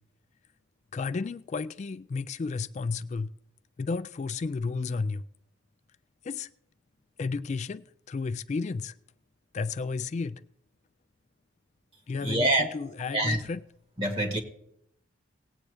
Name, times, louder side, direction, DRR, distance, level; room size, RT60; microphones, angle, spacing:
voice 1, 0.9-3.3 3.8-5.2 6.2-6.5 7.2-8.9 9.5-10.4 12.1-13.6, left 4 dB, 35° left, 0.3 m, -32 dB
voice 2, 12.2-12.7 13.1-13.4 14.0-14.4, right 1 dB, 30° right, 1.5 m, -25 dB
18.5 x 8.6 x 3.3 m
head